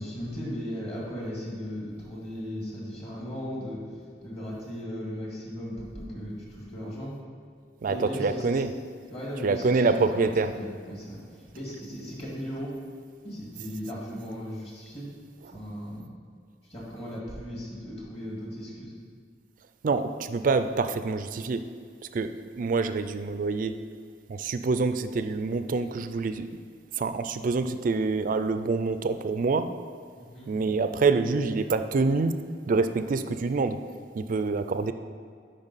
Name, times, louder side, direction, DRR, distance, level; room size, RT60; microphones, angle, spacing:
voice 1, 0.0-3.8 4.2-7.2 7.9-8.6 9.1-12.7 13.2-15.1 15.5-16.1 16.7-18.9 30.2-30.5, equal, 35° left, -4 dB, 1.9 m, -37 dB
voice 2, 7.8-8.8 9.4-10.6 19.8-21.6 22.1-23.7 24.3-26.5 27.0-29.7 30.5-32.3 32.7-33.8 34.2-34.9, right 4 dB, 50° right, 10 dB, 0.4 m, -26 dB
8.9 x 5.2 x 4.1 m, 2.1 s
head